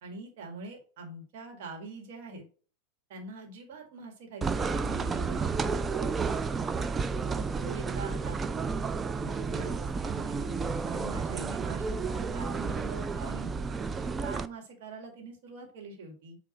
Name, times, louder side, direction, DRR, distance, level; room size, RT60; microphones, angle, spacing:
voice 1, 0.0-2.5 3.1-5.6 7.3-8.4 9.1-10.6 10.8-13.5 14.0-16.4, right 3 dB, 50° right, 2 dB, 1.9 m, -44 dB
sound 1, 4.4-14.5, right 4 dB, 15° right, 0.4 m, -31 dB
8.5 x 2.9 x 4.3 m, 0.40 s
figure-of-eight pair, 90°, 0 cm